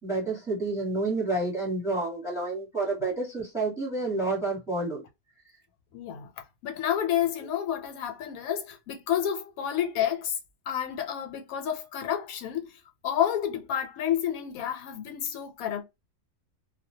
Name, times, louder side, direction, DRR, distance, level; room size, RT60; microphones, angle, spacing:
voice 1, 0.0-5.0, right 2 dB, ahead, 1.0 m, -29 dB
voice 2, 5.9-10.4 10.7-15.8, left 10 dB, 80° left, 1.0 m, -30 dB
2.3 x 2.2 x 2.7 m
omnidirectional pair, 1.5 m